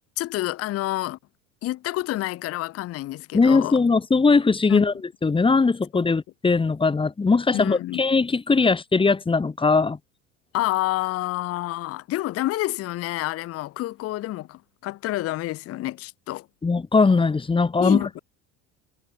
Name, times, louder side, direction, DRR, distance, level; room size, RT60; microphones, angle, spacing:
voice 1, 0.2-1.2 1.6-3.8 4.7-4.8 7.5-8.0 10.5-16.5 17.8-18.2, left 16 dB, 40° left, 0.6 m, -28 dB
voice 2, 3.3-4.9 5.2-10.0 16.6-18.2, left 4 dB, 15° left, 1.0 m, -20 dB
hypercardioid pair, 80°, 39 cm